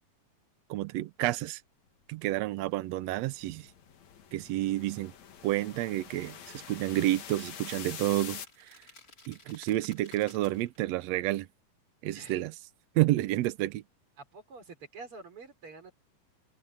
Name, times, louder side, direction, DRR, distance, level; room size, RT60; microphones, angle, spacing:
voice 1, 0.7-1.6 2.1-3.7 4.3-5.1 5.4-8.8 9.3-11.5 12.0-12.5 12.9-13.8, right 16 dB, 80° right, 1.5 m, -30 dB
sound 1, 2.5-8.5, left 8 dB, 60° left, 2.9 m, -46 dB
sound 2, 5.6-11.0, left 2 dB, 25° left, 5.0 m, -57 dB
voice 2, 12.1-12.4 14.2-15.9, right 4 dB, 40° right, 4.5 m, -47 dB
open air
omnidirectional pair, 3.8 m